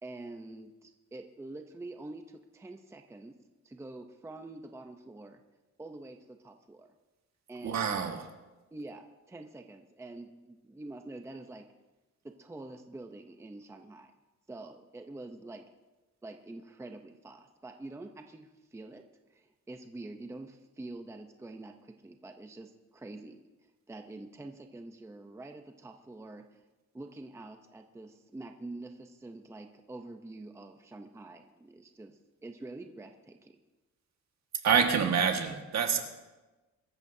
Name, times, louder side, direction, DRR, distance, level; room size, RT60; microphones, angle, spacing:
voice 1, 0.0-3.4 3.6-5.4 5.8-6.9 7.5-8.0 8.7-11.7 12.4-14.1 14.5-15.6 16.2-19.0 19.3-26.6 26.9-33.5, right 2 dB, 10° right, 5 dB, 0.6 m, -46 dB
voice 2, 7.6-8.3 34.5-36.0, right 7 dB, 60° right, 4 dB, 1.7 m, -27 dB
23.5 x 14.0 x 2.7 m, 1.1 s
wide cardioid pair, 170°, 30 cm